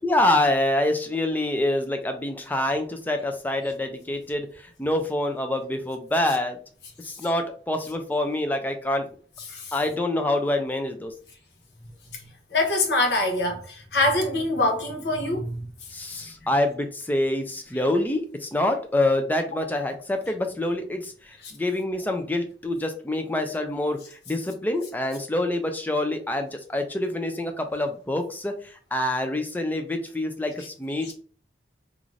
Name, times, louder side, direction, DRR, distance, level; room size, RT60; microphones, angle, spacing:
voice 1, 0.0-6.6 7.0-9.1 9.7-11.1 15.9-31.1, left 1 dB, 10° left, 0.3 m, -26 dB
voice 2, 12.5-15.7 16.1-16.2 31.0-31.1, left 2 dB, 70° left, 0.7 m, -24 dB
2.5 x 2.5 x 3.0 m
head